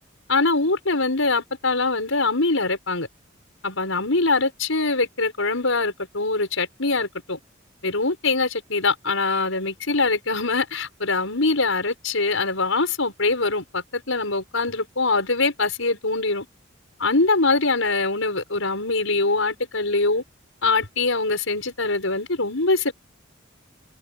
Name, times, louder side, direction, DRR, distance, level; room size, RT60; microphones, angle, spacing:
voice 1, 0.3-3.1 3.6-7.4 7.8-16.5 17.0-20.2 20.6-22.9, left 3 dB, 85° left, 6.2 m, -23 dB
head